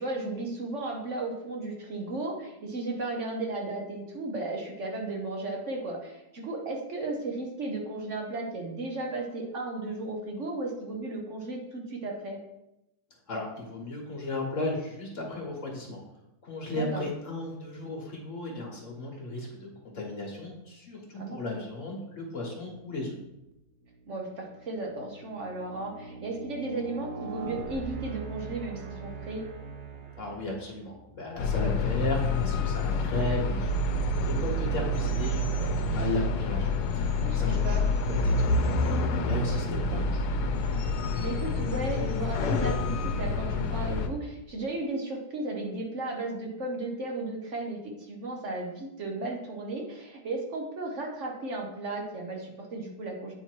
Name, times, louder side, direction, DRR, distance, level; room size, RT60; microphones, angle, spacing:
voice 1, 0.0-12.4 16.7-17.0 21.1-21.6 24.1-29.4 37.2-37.9 41.2-53.3, right 2 dB, 55° right, 1 dB, 1.1 m, -35 dB
voice 2, 13.3-16.0 16.4-23.2 30.2-37.8 38.0-40.2, left 2 dB, 55° left, -1 dB, 1.4 m, -35 dB
sound 1, 23.3-23.5 24.1-31.0, right 4 dB, 80° right, 1.3 m, -42 dB
sound 2, 31.4-44.1, left 2 dB, 90° left, 1.2 m, -27 dB
8.2 x 2.8 x 4.5 m, 0.88 s
omnidirectional pair, 1.7 m